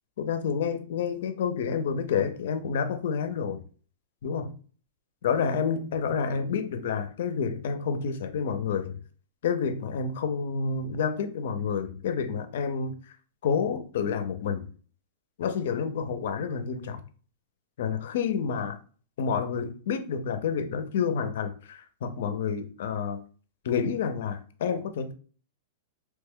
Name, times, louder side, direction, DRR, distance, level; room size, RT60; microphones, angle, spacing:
voice 1, 0.2-3.6 4.2-4.5 5.2-9.0 9.4-13.0 13.4-14.6 15.4-17.0 17.8-18.7 19.2-23.2 23.6-25.1, left 6 dB, 65° left, 0.5 m, -29 dB
2.9 x 2.1 x 3.5 m
supercardioid pair, 165°, 0 cm